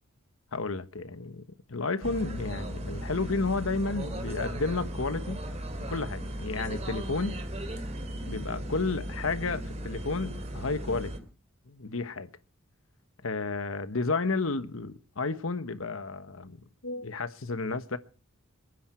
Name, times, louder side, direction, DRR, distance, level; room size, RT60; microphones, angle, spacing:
voice 1, 0.5-1.4 1.7-5.4 5.9-7.4 8.2-11.1 11.7-12.3 13.2-18.0, left 3 dB, 70° left, 1.2 m, -32 dB
sound 1, 2.0-11.2, right 1 dB, 30° right, 2.7 m, -36 dB
27.0 x 10.0 x 4.4 m
head